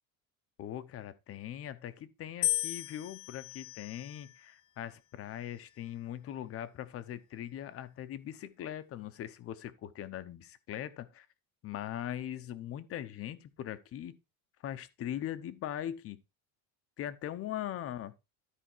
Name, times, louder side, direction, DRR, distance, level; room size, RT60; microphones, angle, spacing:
voice 1, 0.6-11.3 11.6-14.1 14.6-16.2 17.0-18.1, left 11 dB, 35° left, 0.8 m, -40 dB
sound 1, 2.4-4.6 5.4-6.0, left 17 dB, 70° left, 1.6 m, -36 dB
13.0 x 4.5 x 4.5 m
cardioid pair, 165°, 41 cm